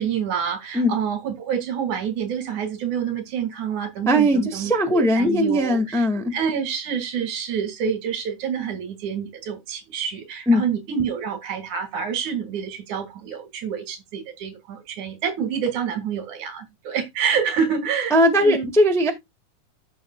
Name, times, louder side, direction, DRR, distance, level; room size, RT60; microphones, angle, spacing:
voice 1, 0.0-18.7, right 7 dB, 75° right, 3.3 m, -27 dB
voice 2, 4.0-6.2 10.5-10.6 18.1-19.1, equal, ahead, 0.8 m, -19 dB
13.5 x 6.5 x 2.2 m
omnidirectional pair, 3.5 m